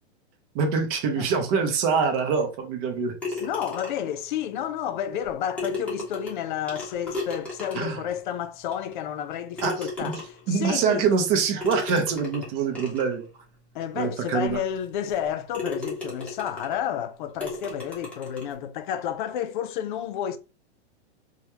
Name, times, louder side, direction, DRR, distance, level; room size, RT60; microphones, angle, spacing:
voice 1, 0.5-3.1 7.7-8.0 9.6-10.2 10.5-13.3 14.0-14.6, right 5 dB, 35° right, 0.7 m, -25 dB
sound 1, 3.2-4.2 5.2-5.3 5.6-8.1 8.7-8.8 9.6-10.5 11.6-13.1 13.8-13.9 14.4-14.5 15.1-15.2 15.5-16.8 17.4-18.5, left 3 dB, 5° left, 1.0 m, -35 dB
voice 2, 3.4-11.1 13.7-20.4, left 9 dB, 50° left, 0.4 m, -31 dB
3.0 x 2.4 x 2.7 m
hypercardioid pair, 140°, 33 cm